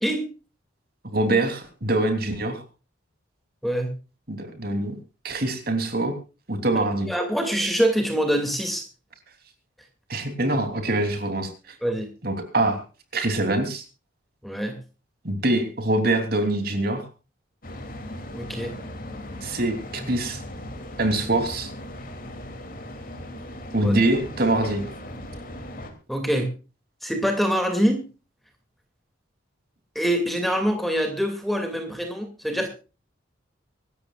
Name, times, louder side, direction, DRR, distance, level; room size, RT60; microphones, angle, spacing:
voice 1, 1.1-2.6 4.3-4.9 5.2-6.1 6.5-7.1 10.1-11.5 12.2-12.8 13.1-13.8 15.2-17.1 19.4-20.4 21.0-21.7 23.7-24.8, right 2 dB, 50° right, 6 dB, 3.3 m, -24 dB
voice 2, 3.6-3.9 6.7-8.8 11.8-12.1 14.4-14.8 18.3-18.7 23.8-23.9 26.1-26.5 27.0-28.1 29.9-32.7, equal, ahead, 4 dB, 2.5 m, -25 dB
sound 1, 17.6-25.9, left 1 dB, 45° left, 2.9 m, -38 dB
25.0 x 13.0 x 2.5 m, 0.32 s
head